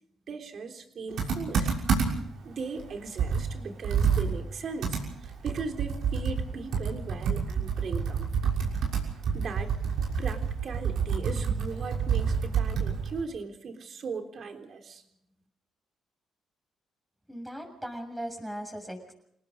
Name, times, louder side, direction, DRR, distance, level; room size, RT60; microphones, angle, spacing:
voice 1, 0.3-1.7 2.4-8.6 9.3-9.8 10.2-15.0, right 4 dB, 55° right, 4 dB, 3.5 m, -38 dB
Computer keyboard, 1.2-2.3 2.8-2.9 3.2-6.5 6.7-13.2, right 6 dB, 75° right, 6.3 m, -28 dB
voice 2, 17.3-19.1, equal, 5° right, 5 dB, 7.1 m, -38 dB
29.5 x 19.0 x 5.0 m, 0.70 s
cardioid pair, 90°, 0 cm